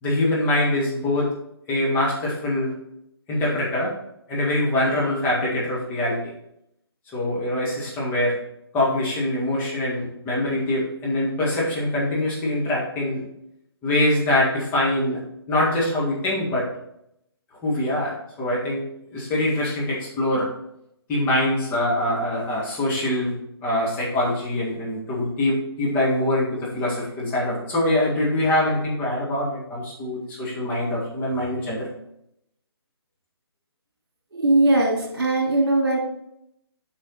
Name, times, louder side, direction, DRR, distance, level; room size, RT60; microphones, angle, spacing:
voice 1, 0.0-1.3 1.7-2.7 3.3-3.9 4.3-6.3 7.1-8.4 8.7-13.2 13.8-15.2 15.5-16.7 17.6-18.8 19.1-20.5 21.1-23.3 23.6-31.9, left 1 dB, 15° left, -6 dB, 1.9 m, -24 dB
voice 2, 34.3-36.0, right 2 dB, 60° right, -1 dB, 3.3 m, -20 dB
9.1 x 5.0 x 4.0 m, 0.78 s
figure-of-eight pair, 145°, 14 cm